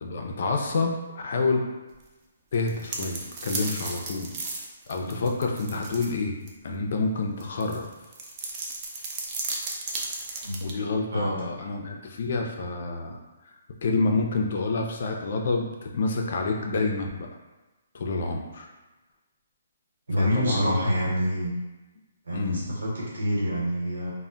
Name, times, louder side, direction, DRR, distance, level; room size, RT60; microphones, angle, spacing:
voice 1, 0.0-1.7 2.5-4.3 4.9-6.4 6.6-7.9 10.6-13.2 13.8-17.3 17.9-18.7 20.2-20.8 22.3-22.7, left 3 dB, 55° left, 2 dB, 0.4 m, -28 dB
sound 1, 2.5-6.1 6.5-6.6 7.4-10.7, right 3 dB, 25° right, 0.4 m, -34 dB
voice 2, 10.4-10.8 11.1-11.5 20.1-21.5 22.2-24.1, equal, 85° right, -4 dB, 1.1 m, -27 dB
2.1 x 2.1 x 3.7 m, 1.1 s
hypercardioid pair, 165°, 0 cm